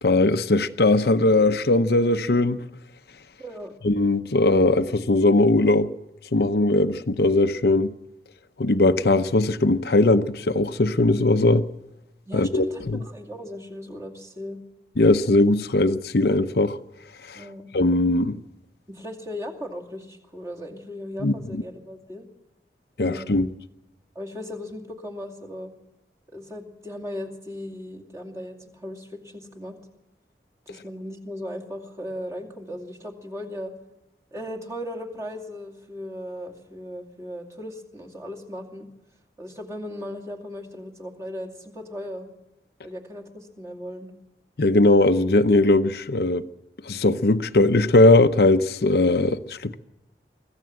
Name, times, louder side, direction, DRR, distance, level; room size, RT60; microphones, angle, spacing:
voice 1, 0.0-2.6 3.8-5.9 6.3-7.9 8.6-11.7 12.3-13.0 15.0-16.8 17.3-17.4 17.7-18.4 21.2-21.6 23.0-23.5 44.6-46.5 46.8-49.8, left 2 dB, 65° left, 0.7 m, -19 dB
voice 2, 3.4-3.7 12.3-14.6 17.3-17.7 18.9-22.3 23.0-23.5 24.1-25.7 26.3-29.8 30.7-33.7 34.3-38.9 39.4-42.3 42.8-44.1, equal, 20° right, 2.5 m, -37 dB
24.5 x 15.0 x 7.7 m
head